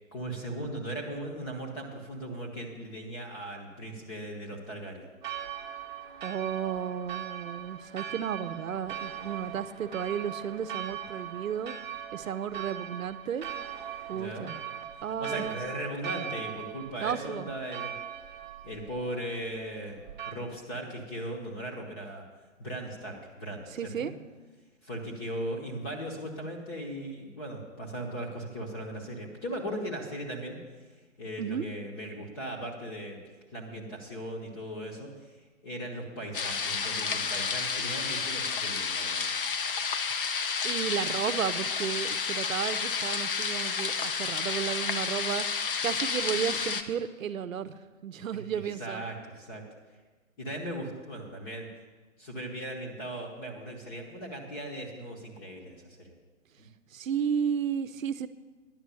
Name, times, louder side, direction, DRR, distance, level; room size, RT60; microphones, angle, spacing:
voice 1, 0.1-5.1 14.1-14.5 15.2-17.9 18.6-20.0 20.2-22.2 22.6-24.1 24.8-30.6 31.2-33.2 33.5-35.1 35.6-39.3 48.3-49.6 50.4-51.7 52.2-56.2 56.6-56.7, right 1 dB, 15° left, -1 dB, 0.9 m, -38 dB
Church bell, 5.2-20.3, right 9 dB, 35° right, 0.9 m, -40 dB
voice 2, 6.2-11.7 12.1-13.5 14.1-14.5 15.0-15.6 17.0-17.5 23.7-24.1 31.4-31.7 40.6-47.7 48.0-49.0 56.9-58.3, right 8 dB, 75° right, 14 dB, 0.8 m, -33 dB
sound 1, 36.3-46.8, left 5 dB, 40° left, 0.6 m, -31 dB
10.5 x 6.2 x 8.3 m, 1.3 s
hypercardioid pair, 160°, 41 cm